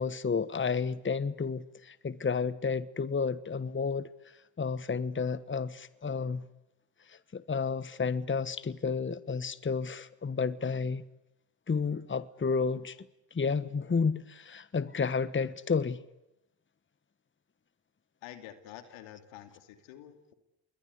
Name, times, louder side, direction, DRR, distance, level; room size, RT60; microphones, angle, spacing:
voice 1, 0.0-4.1 4.6-6.4 7.1-11.0 11.7-13.0 13.3-16.0, left 5 dB, 25° left, 1.3 m, -31 dB
voice 2, 18.2-20.3, left 11 dB, 80° left, 2.8 m, -48 dB
28.5 x 22.0 x 8.3 m
hypercardioid pair, 55°, 47 cm